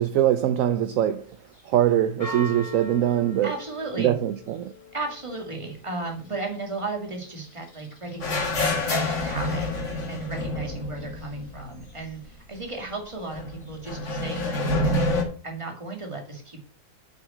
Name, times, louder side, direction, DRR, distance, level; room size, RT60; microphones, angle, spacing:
voice 1, 0.0-1.4 1.6-3.5 4.0-4.7, right 11 dB, 65° right, 0.9 m, -23 dB
Church bell, 1.1-15.0, equal, 85° left, 3.9 m, -46 dB
voice 2, 3.4-4.2 4.9-9.8 10.1-16.6, right 3 dB, 20° right, 2.2 m, -35 dB
sound 1, 8.2-12.0 12.2-12.3 13.3-15.2, left 2 dB, 50° left, 2.2 m, -27 dB
7.2 x 6.2 x 6.3 m
omnidirectional pair, 1.6 m